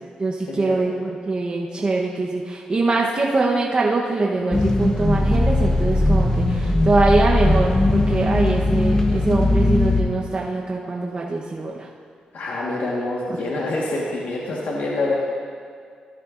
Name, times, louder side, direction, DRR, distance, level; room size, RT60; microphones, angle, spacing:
voice 1, 0.2-11.9 13.3-13.4, right 3 dB, 35° right, -2 dB, 0.9 m, -23 dB
sound 1, 4.5-10.0, left 2 dB, 20° left, 1.0 m, -19 dB
voice 2, 12.3-15.1, left 2 dB, 80° left, -4 dB, 1.4 m, -26 dB
14.0 x 12.5 x 2.5 m, 2.1 s
cardioid pair, 90°, 3 cm